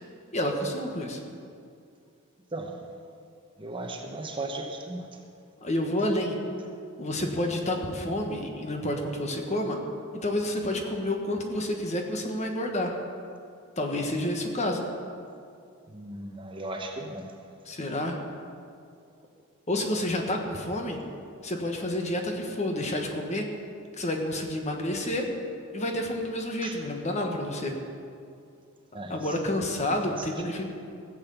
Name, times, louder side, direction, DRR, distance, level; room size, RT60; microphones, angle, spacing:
voice 1, 0.3-1.2 5.6-6.4 7.0-9.8 10.2-12.9 13.8-14.8 17.7-18.2 19.7-21.0 21.4-23.4 24.0-25.3 25.7-27.7 29.1-30.6, left 1 dB, 35° left, 3 dB, 1.4 m, -29 dB
voice 2, 2.5-2.8 3.6-5.2 15.9-17.3 26.6-26.8 28.9-29.4 30.1-30.3, right 2 dB, 25° right, 3 dB, 1.0 m, -37 dB
16.5 x 7.7 x 7.0 m, 2.4 s
head